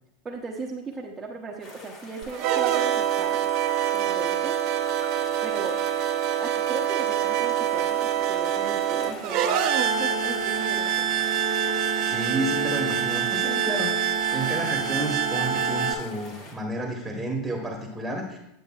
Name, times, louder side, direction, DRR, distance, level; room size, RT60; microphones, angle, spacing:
voice 1, 0.2-3.4 3.9-4.6 5.4-5.8 6.4-11.4, right 3 dB, 20° right, -2 dB, 0.8 m, -37 dB
sound 1, 1.6-16.5, left 2 dB, 50° left, 2.1 m, -44 dB
sound 2, 2.2-15.9, right 9 dB, 55° right, 0.7 m, -25 dB
voice 2, 12.1-18.4, right 1 dB, 5° right, 0 dB, 1.2 m, -31 dB
9.1 x 7.7 x 2.4 m, 0.83 s
supercardioid pair, 125°, 0 cm